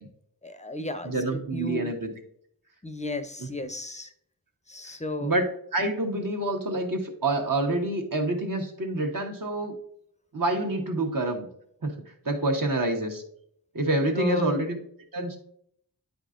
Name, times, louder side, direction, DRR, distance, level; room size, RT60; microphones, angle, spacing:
voice 1, 0.4-1.9 2.8-4.1 4.7-5.3 14.1-14.6, left 2 dB, 20° left, 9 dB, 0.6 m, -33 dB
voice 2, 1.0-2.1 3.4-3.5 5.2-9.7 10.3-11.5 11.8-11.9 12.2-13.2 13.7-14.8 15.1-15.4, right 2 dB, 55° right, 1 dB, 1.4 m, -27 dB
9.4 x 5.1 x 2.5 m, 0.67 s
wide cardioid pair, 70°, 39 cm